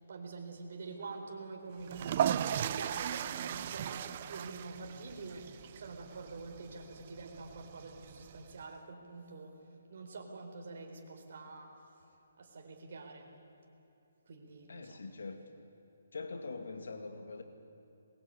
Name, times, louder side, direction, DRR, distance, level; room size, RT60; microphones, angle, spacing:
voice 1, 0.1-9.6 9.9-11.7 12.4-13.3 14.3-15.0, right 3 dB, 45° right, 2 dB, 4.3 m, -46 dB
sound 1, 1.8-8.6, right 10 dB, 30° right, 0.5 m, -37 dB
voice 2, 14.7-15.4 16.1-17.4, left 3 dB, 80° left, 6 dB, 2.3 m, -43 dB
23.0 x 22.0 x 9.0 m, 2.9 s
hypercardioid pair, 175°, 0 cm